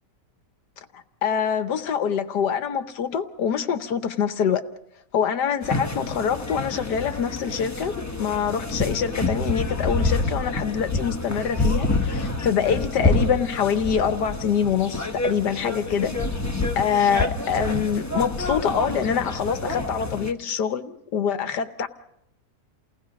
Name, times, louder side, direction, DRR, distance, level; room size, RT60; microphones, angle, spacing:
voice 1, 0.9-4.6 5.1-16.1 16.8-21.9, left 7 dB, 75° left, 1.6 m, -25 dB
sound 1, 5.6-20.3, left 2 dB, 10° left, 1.1 m, -27 dB
29.0 x 18.5 x 5.3 m
omnidirectional pair, 1.8 m